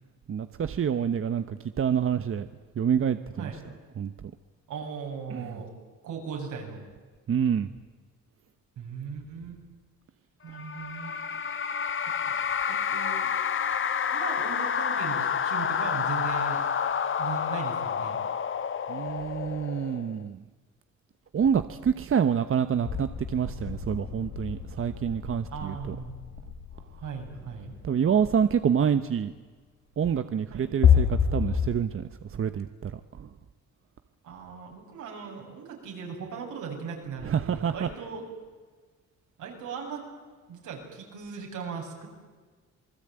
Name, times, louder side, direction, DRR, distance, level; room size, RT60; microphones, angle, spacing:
voice 1, 0.3-2.5 2.8-3.5 4.0-4.3 5.3-5.6 7.3-7.7 18.9-20.4 21.3-26.0 27.8-29.3 30.0-33.3 37.2-37.9, right 8 dB, 45° right, 11 dB, 1.1 m, -27 dB
voice 2, 4.7-5.7 6.0-6.8 8.8-9.6 10.4-11.1 12.6-13.3 14.1-16.6 17.2-18.2 25.5-26.2 27.0-27.7 30.5-30.6 34.2-38.3 39.4-40.0 40.5-42.1, right 6 dB, 80° right, 1 dB, 7.7 m, -38 dB
sound 1, 10.5-20.2, left 7 dB, 40° left, 1.2 m, -29 dB
sound 2, 22.8-28.3 30.8-31.7, left 8 dB, 80° left, 4.2 m, -28 dB
27.5 x 20.5 x 9.0 m, 1.4 s
cardioid pair, 90°, 30 cm